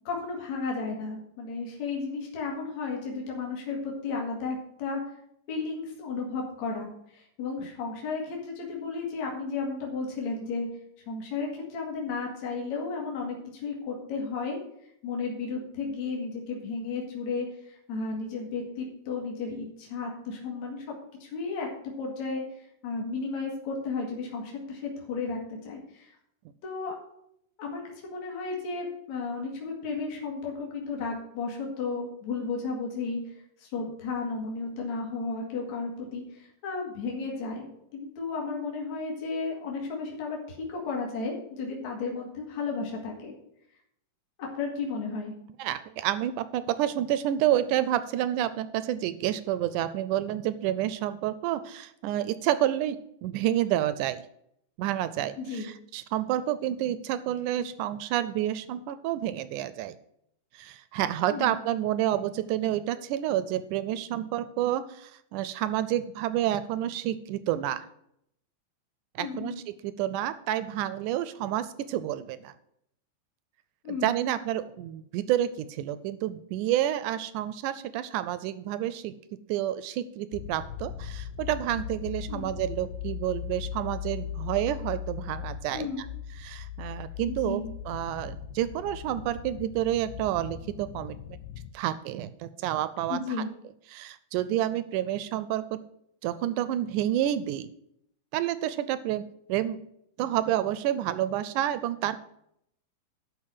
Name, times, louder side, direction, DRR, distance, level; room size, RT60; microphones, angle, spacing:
voice 1, 0.0-5.0 5.5-10.7 11.1-14.6 15.0-20.8 21.2-21.7 22.0-26.1 26.6-27.0 27.6-33.2 33.6-43.3 44.4-45.3 55.4-55.7 61.3-61.6 69.2-69.6 73.8-74.2 82.3-82.5 85.7-86.0 87.3-87.7 93.1-93.5, left 4 dB, 55° left, -1 dB, 3.2 m, -33 dB
voice 2, 45.6-54.2 54.8-60.0 60.5-67.9 69.2-69.5 69.8-72.5 73.9-79.1 79.5-86.1 86.4-91.2 91.7-93.2 93.9-95.8 96.2-97.7 98.3-99.2 99.5-99.8 100.2-102.2, right 12 dB, 80° right, 14 dB, 1.9 m, -29 dB
sound 1, 80.3-91.7, left 9 dB, 85° left, 2.4 m, -39 dB
12.0 x 4.9 x 7.5 m, 0.73 s
omnidirectional pair, 3.9 m